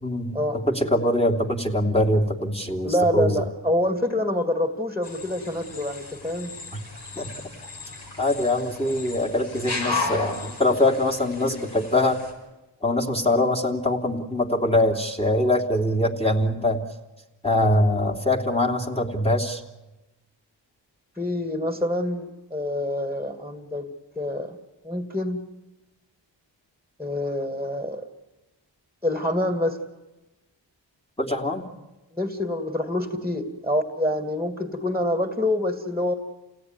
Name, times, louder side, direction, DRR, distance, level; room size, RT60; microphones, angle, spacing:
voice 1, 0.0-0.4 0.7-3.4 7.2-7.3 8.2-12.2 12.8-16.8 17.4-19.6 31.2-31.7, left 1 dB, 10° left, 4 dB, 3.0 m, -23 dB
voice 2, 2.8-6.5 21.2-23.9 24.2-24.6 24.8-25.4 27.0-28.0 29.0-29.8 32.2-36.1, left 1 dB, 5° right, 5 dB, 2.4 m, -26 dB
sound 1, 5.0-12.3, left 3 dB, 55° left, 6.6 m, -34 dB
28.5 x 17.5 x 9.7 m, 1.1 s
cardioid pair, 55°, 46 cm